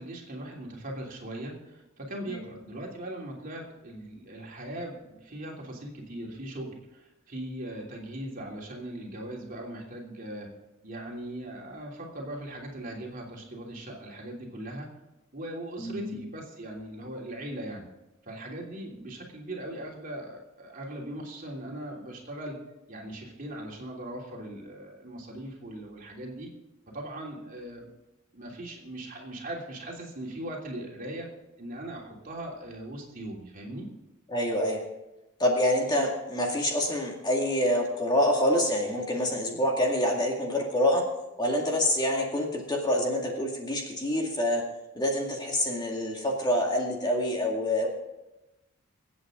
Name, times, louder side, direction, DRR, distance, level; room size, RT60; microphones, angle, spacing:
voice 1, 0.0-10.5 10.8-14.9 15.3-17.8 18.2-22.6 22.9-26.5 26.9-27.9 28.3-31.3 31.6-33.9, right 1 dB, 40° right, -1 dB, 3.1 m, -39 dB
voice 2, 15.8-16.2 34.3-34.8 35.4-41.0 41.4-44.6 44.9-47.9, left 1 dB, 20° left, -1 dB, 2.2 m, -26 dB
23.5 x 8.5 x 3.8 m, 0.98 s
head